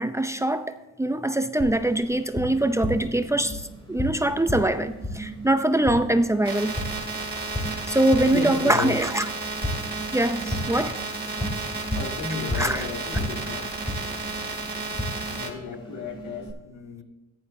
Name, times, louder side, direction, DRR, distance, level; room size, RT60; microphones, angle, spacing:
voice 1, 0.0-6.7 7.9-9.3 10.1-11.0 12.5-12.8, right 1 dB, 10° right, 9 dB, 0.6 m, -23 dB
Tap, 1.6-16.5, equal, 15° left, 3.1 m, -34 dB
sound 1, 6.4-15.5, right 3 dB, 35° right, 2.8 m, -33 dB
voice 2, 8.3-9.0 11.9-13.7 15.3-17.0, left 5 dB, 80° left, 2 dB, 2.3 m, -33 dB
14.5 x 10.5 x 2.7 m, 1.0 s
cardioid pair, 90°, 30 cm